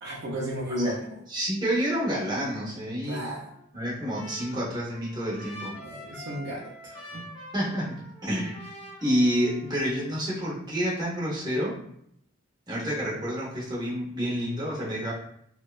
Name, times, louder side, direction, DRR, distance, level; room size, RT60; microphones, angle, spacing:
voice 1, 0.0-1.2 3.0-3.5 5.6-7.3, equal, 55° right, -4 dB, 0.4 m, -34 dB
voice 2, 1.3-3.2 3.7-5.7 7.5-8.6 9.0-11.8 12.7-15.1, equal, 20° right, -6 dB, 0.7 m, -28 dB
Trumpet, 3.3-10.0, left 1 dB, 25° left, 0.5 m, -46 dB
2.6 x 2.1 x 2.3 m, 0.72 s
head